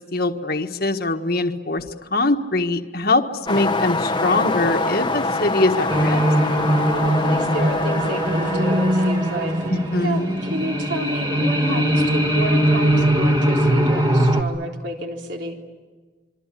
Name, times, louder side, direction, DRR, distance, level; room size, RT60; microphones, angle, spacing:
voice 1, 0.1-1.8 2.1-3.2 3.5-6.2 9.7-10.4, left 2 dB, 50° left, 6 dB, 1.5 m, -22 dB
sound 1, 3.5-9.6, left 2 dB, 25° left, 1.0 m, -25 dB
sound 2, 5.9-14.4, right 1 dB, 25° right, 1.8 m, -21 dB
voice 2, 6.8-9.5 10.0-15.6, right 1 dB, 65° right, 1 dB, 3.9 m, -30 dB
sound 3, 8.3-13.1, left 1 dB, 40° right, 1.3 m, -27 dB
26.5 x 25.0 x 8.6 m, 1.4 s
head